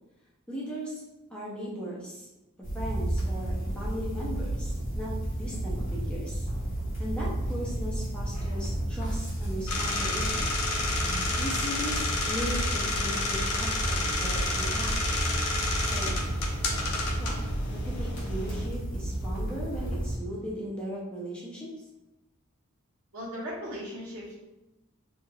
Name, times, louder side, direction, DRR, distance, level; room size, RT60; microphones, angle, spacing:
voice 1, 0.5-1.0 1.3-2.3 2.6-6.5 7.0-10.4 11.4-15.2 15.8-16.1 17.2-21.7, equal, 5° left, -6 dB, 0.4 m, -38 dB
sound 1, 2.6-20.2, right 1 dB, 35° left, 1.0 m, -32 dB
sound 2, 9.7-18.7, left 2 dB, 85° left, 0.5 m, -31 dB
voice 2, 23.1-24.4, equal, 80° right, -5 dB, 0.9 m, -38 dB
3.1 x 2.3 x 2.3 m, 0.99 s
head